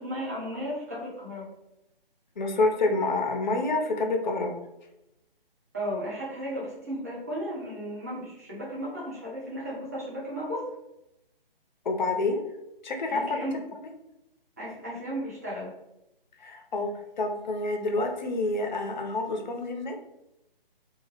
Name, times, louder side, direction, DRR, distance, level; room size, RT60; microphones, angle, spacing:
voice 1, 0.0-1.5 5.7-10.6 13.1-13.6 14.6-15.7, equal, 15° right, -6 dB, 0.4 m, -34 dB
voice 2, 2.4-4.6 11.8-12.4 12.8-13.4 16.4-16.9 17.2-20.0, left 2 dB, 50° left, 3 dB, 0.5 m, -28 dB
2.2 x 2.0 x 3.1 m, 0.87 s
figure-of-eight pair, 145°, 29 cm